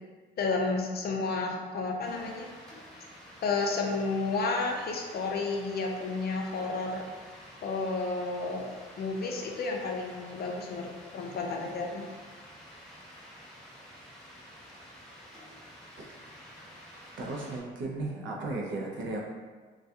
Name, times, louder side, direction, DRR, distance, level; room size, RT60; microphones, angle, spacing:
voice 1, 0.4-2.5 3.4-7.0 7.6-8.7 9.0-12.1, left 3 dB, 50° left, 1 dB, 0.5 m, -31 dB
sound 1, 2.0-17.6, equal, ahead, 0.6 m, -50 dB
voice 2, 17.2-19.2, right 2 dB, 70° right, -1 dB, 0.6 m, -35 dB
2.3 x 2.3 x 2.7 m, 1.5 s
cardioid pair, 90°, 20 cm